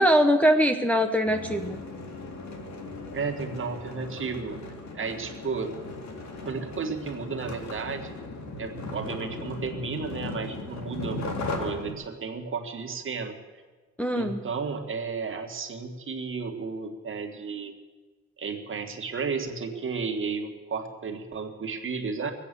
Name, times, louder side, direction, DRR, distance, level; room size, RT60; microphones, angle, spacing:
voice 1, 0.0-1.8 14.0-14.4, equal, 5° left, 3 dB, 1.0 m, -22 dB
sound 1, 1.2-11.9, left 2 dB, 65° left, 2.5 m, -37 dB
voice 2, 3.1-4.6 4.9-5.7 6.4-8.1 8.6-13.4 14.2-17.7 18.4-22.3, right 5 dB, 40° right, 4 dB, 2.0 m, -33 dB
22.5 x 8.4 x 7.0 m, 1.3 s
cardioid pair, 90°, 30 cm